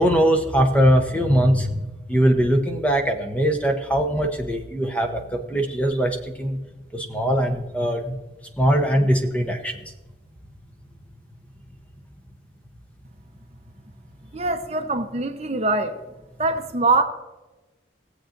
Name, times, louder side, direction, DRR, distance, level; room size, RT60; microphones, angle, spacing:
voice 1, 0.0-6.6 6.9-8.2 8.6-9.8, equal, 5° left, 4 dB, 0.8 m, -21 dB
voice 2, 14.3-16.0 16.4-17.0, right 3 dB, 35° right, 6 dB, 0.8 m, -23 dB
18.5 x 7.7 x 2.6 m, 1.1 s
head